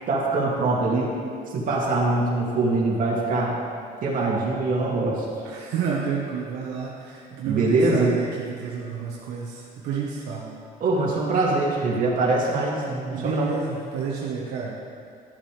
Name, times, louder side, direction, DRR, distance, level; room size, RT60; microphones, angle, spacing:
voice 1, 0.1-1.1 1.5-3.6 4.0-5.2 7.4-8.1 10.8-13.5, right 2 dB, 55° right, -4 dB, 2.4 m, -23 dB
voice 2, 5.4-10.5 13.1-14.7, right 6 dB, 85° right, -4 dB, 1.2 m, -30 dB
13.0 x 7.4 x 3.3 m, 2.4 s
cardioid pair, 110°, 17 cm